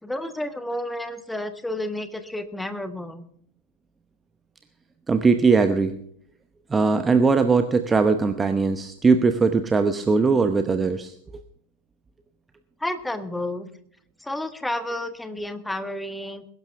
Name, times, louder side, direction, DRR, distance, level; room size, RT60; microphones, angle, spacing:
voice 1, 0.0-3.2 12.8-13.7 14.2-16.5, left 1 dB, 5° left, 10 dB, 1.4 m, -31 dB
voice 2, 5.1-6.0 6.7-11.1, right 4 dB, 15° right, 9 dB, 0.9 m, -20 dB
21.5 x 12.0 x 3.4 m, 0.63 s
figure-of-eight pair, 90°, 0 cm